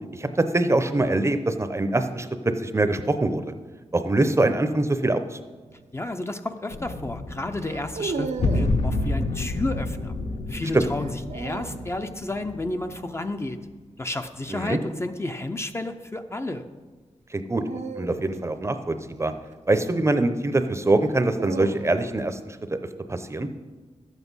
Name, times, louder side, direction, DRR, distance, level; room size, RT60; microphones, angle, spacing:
voice 1, 0.5-2.3 2.6-3.5 3.9-5.4 10.7-10.8 14.5-14.8 17.3-17.6 17.9-19.3 19.7-22.8 23.1-23.5, right 2 dB, 25° right, 9 dB, 0.7 m, -23 dB
sound 1, 5.7-6.0 7.6-8.8 10.9-11.9 14.3-14.7 17.5-19.9 20.9-22.2, right 4 dB, 75° right, 0.7 m, -36 dB
voice 2, 5.9-10.1 10.5-13.6 14.0-16.6, left 2 dB, 20° left, 7 dB, 0.6 m, -31 dB
sound 2, 6.7-13.5, left 2 dB, 60° left, 1.1 m, -29 dB
12.0 x 8.1 x 5.5 m, 1.3 s
wide cardioid pair, 125°, 12 cm